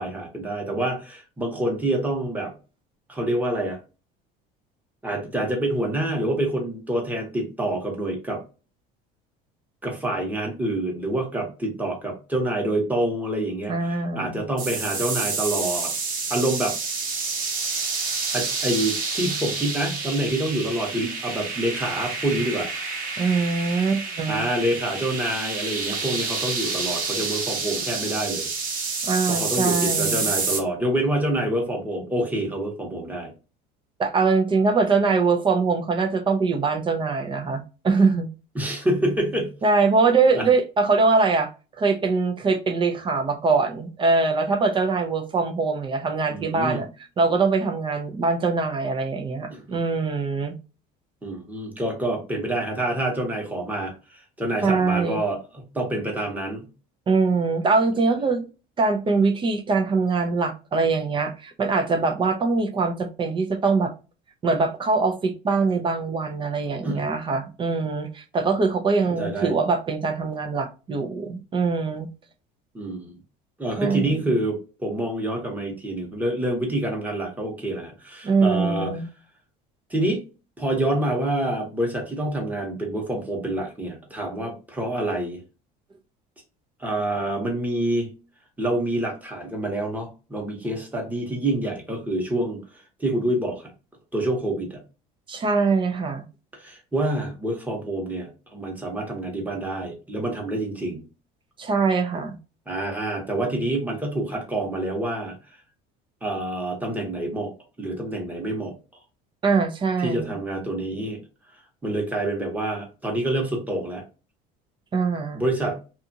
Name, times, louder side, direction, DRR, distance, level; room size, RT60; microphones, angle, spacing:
voice 1, 0.0-2.5 3.1-3.8 5.0-8.4 9.8-15.9 16.3-16.8 18.3-22.7 24.3-28.5 29.3-33.3 38.5-39.5 40.4-40.5 46.3-46.8 49.5-49.8 51.2-56.7 66.8-67.0 69.1-69.5 72.7-73.2 73.6-78.9 79.9-80.2 80.6-85.4 86.8-88.1 88.6-93.7 94.1-94.8 96.6-101.0 102.7-105.6 106.2-107.5 107.8-108.7 110.0-111.2 111.8-114.0 115.3-115.8, right 1 dB, 10° right, 1.0 m, -27 dB
voice 2, 13.7-14.4 23.2-24.4 29.0-30.3 34.0-38.3 39.6-41.5 41.8-46.9 47.2-50.6 54.6-55.2 57.1-58.5 58.8-63.9 64.4-72.1 73.8-74.2 78.2-79.1 95.3-96.2 101.6-102.4 109.4-110.4 114.9-115.4, right 4 dB, 25° right, 0.5 m, -23 dB
sound 1, 14.6-30.6, right 4 dB, 45° right, 1.0 m, -28 dB
2.7 x 2.3 x 2.6 m
cardioid pair, 130°, 20 cm